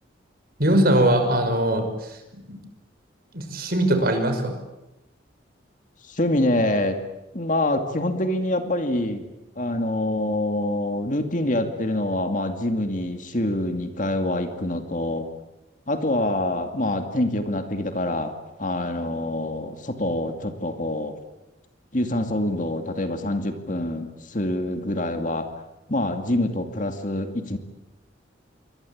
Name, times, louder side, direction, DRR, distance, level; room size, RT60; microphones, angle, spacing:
voice 1, 0.6-1.8 2.5-2.6 3.3-4.5, right 1 dB, 50° right, 6 dB, 5.8 m, -20 dB
voice 2, 6.1-7.0 7.3-9.3 9.6-15.3 15.9-18.3 18.6-21.1 21.9-25.5 25.9-27.6, left 1 dB, 40° left, 6 dB, 2.5 m, -25 dB
27.5 x 24.5 x 8.7 m, 0.94 s
head